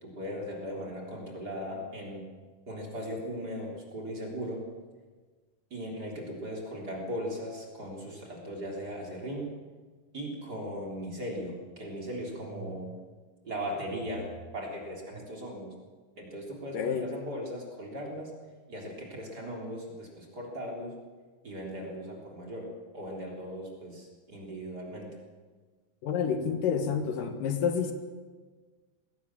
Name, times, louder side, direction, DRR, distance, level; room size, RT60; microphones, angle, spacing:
voice 1, 0.0-2.2 2.7-4.7 5.7-9.5 10.1-13.0 13.4-15.7 16.2-18.3 18.7-20.9 21.4-25.1, equal, 30° right, -1 dB, 4.0 m, -38 dB
voice 2, 16.7-17.1 26.0-27.9, left 7 dB, 75° left, 6 dB, 3.1 m, -29 dB
20.5 x 17.5 x 7.6 m, 1.4 s
omnidirectional pair, 3.9 m